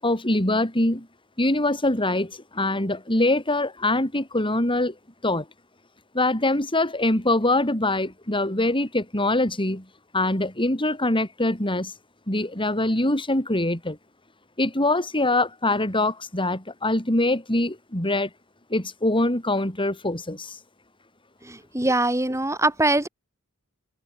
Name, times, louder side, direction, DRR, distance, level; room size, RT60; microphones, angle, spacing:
voice 1, 0.0-1.1 1.4-4.9 5.2-5.5 6.1-9.8 10.1-11.9 12.3-14.0 14.6-18.3 18.7-20.6, left 2 dB, 25° left, 6.5 m, -23 dB
voice 2, 21.7-23.1, right 2 dB, 15° right, 3.3 m, -22 dB
head